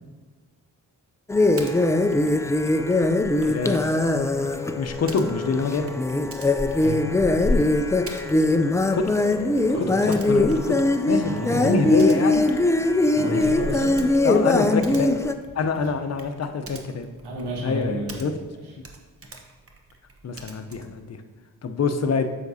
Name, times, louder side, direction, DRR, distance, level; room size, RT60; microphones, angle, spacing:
sound 1, 1.3-15.3, left 2 dB, 10° left, 0.4 m, -21 dB
Typing, 1.6-1.8 2.1-18.5 18.8-21.0, right 3 dB, 35° right, 1.0 m, -46 dB
voice 1, 3.4-3.8 4.4-5.9 8.9-9.1 10.1-10.8 11.1-12.4 13.1-13.7 14.2-15.1 15.6-17.1 17.6-18.3 20.2-21.2 21.6-22.3, left 4 dB, 40° left, 7 dB, 0.7 m, -25 dB
voice 2, 6.8-7.3 9.7-10.1 11.0-11.9 13.1-14.0 15.6-15.8 17.2-18.7, right 1 dB, 80° right, -2 dB, 1.5 m, -32 dB
7.8 x 5.8 x 2.7 m, 1.4 s
supercardioid pair, 50°, 38 cm